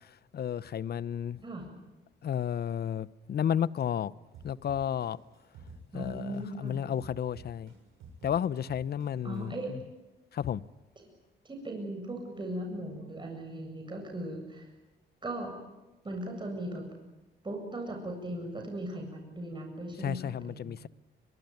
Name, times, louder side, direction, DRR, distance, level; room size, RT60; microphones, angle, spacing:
voice 1, 0.3-1.4 2.2-4.1 4.4-5.2 5.9-7.7 8.2-9.5 10.3-10.6 20.0-20.9, left 9 dB, 55° left, 0.9 m, -32 dB
sound 1, 4.3-6.7 7.0-9.4, right 4 dB, 90° right, 6.9 m, -50 dB
voice 2, 5.9-6.8 9.2-9.7 11.4-14.7 15.2-15.5 16.0-16.8 17.4-20.7, right 1 dB, 25° right, 7.8 m, -38 dB
25.0 x 22.5 x 9.5 m
cardioid pair, 90°, 20 cm